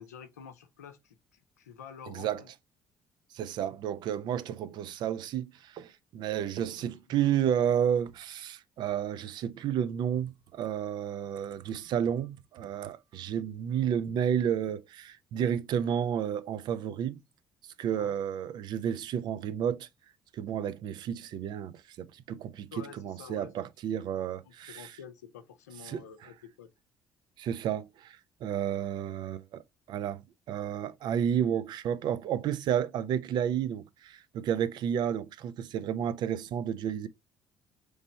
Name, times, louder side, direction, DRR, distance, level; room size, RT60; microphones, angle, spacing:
voice 1, 0.0-2.5 6.8-6.9 7.2-7.6 17.9-18.2 22.7-23.5 24.4-26.7, left 7 dB, 90° left, 0.5 m, -49 dB
voice 2, 2.1-2.4 3.3-17.2 17.8-19.9 20.3-24.9 25.9-26.0 27.4-37.1, right 9 dB, 60° right, 0.4 m, -31 dB
3.2 x 3.0 x 4.1 m
hypercardioid pair, 50°, 9 cm